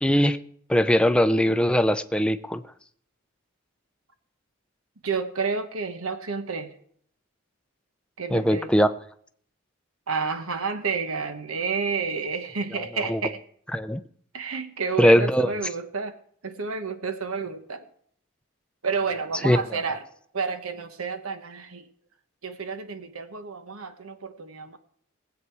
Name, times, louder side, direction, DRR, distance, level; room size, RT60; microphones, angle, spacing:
voice 1, 0.0-0.4 0.7-2.6 8.3-8.9 13.1-13.2 13.7-14.0 15.0-15.5 19.4-19.6, equal, 5° left, 0.5 m, -20 dB
voice 2, 5.0-6.7 8.2-8.7 10.1-13.4 14.3-16.1 16.4-17.9 18.8-20.0 20.3-21.8 22.4-24.8, right 5 dB, 85° right, 1.1 m, -30 dB
20.0 x 8.3 x 4.7 m
head